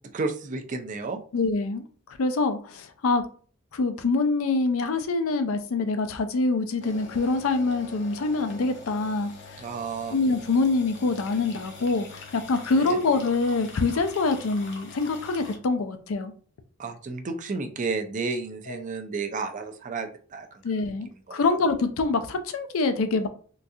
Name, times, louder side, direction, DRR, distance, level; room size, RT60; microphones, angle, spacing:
voice 1, 0.1-1.2 9.6-10.1 12.7-13.0 16.8-20.9 21.3-21.4, right 4 dB, 40° right, 5 dB, 0.4 m, -32 dB
voice 2, 1.3-3.2 3.7-9.6 10.1-12.1 12.3-16.3 18.7-18.8 20.6-23.3, left 3 dB, 90° left, 9 dB, 0.5 m, -25 dB
sound 1, 6.8-15.6, left 4 dB, 55° left, 0.8 m, -44 dB
3.7 x 2.3 x 2.7 m, 0.43 s
head